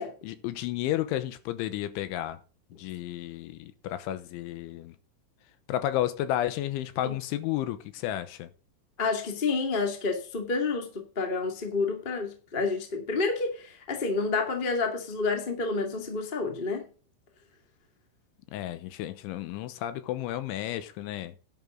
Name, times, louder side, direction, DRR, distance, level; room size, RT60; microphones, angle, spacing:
voice 1, 0.2-2.4 2.7-5.0 5.7-8.5 18.5-21.3, left 13 dB, 80° left, 3.3 m, -32 dB
voice 2, 9.0-16.8, left 4 dB, 50° left, 0.6 m, -29 dB
11.0 x 11.0 x 3.9 m
omnidirectional pair, 5.6 m